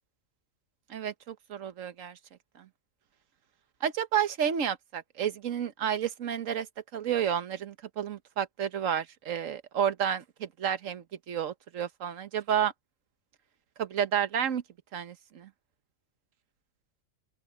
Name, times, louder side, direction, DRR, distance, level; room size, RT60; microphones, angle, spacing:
voice 1, 0.9-2.2 2.6-2.7 3.8-6.7 6.9-12.7 13.8-14.6 14.9-15.5, right 9 dB, 80° right, 1.4 m, -31 dB
open air
omnidirectional pair, 1.3 m